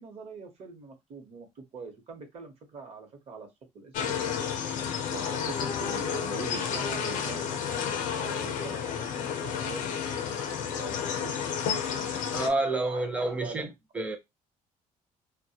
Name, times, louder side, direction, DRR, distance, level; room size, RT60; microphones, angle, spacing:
voice 1, 0.0-3.5 3.7-10.2 10.7-10.9 11.2-13.7, right 4 dB, 50° right, 0.8 m, -43 dB
sound 1, 3.9-12.5, left 7 dB, 70° left, 0.5 m, -31 dB
voice 2, 12.3-13.7 13.9-14.2, right 2 dB, 10° right, 0.5 m, -28 dB
2.1 x 2.1 x 2.7 m
cardioid pair, 135°, 14 cm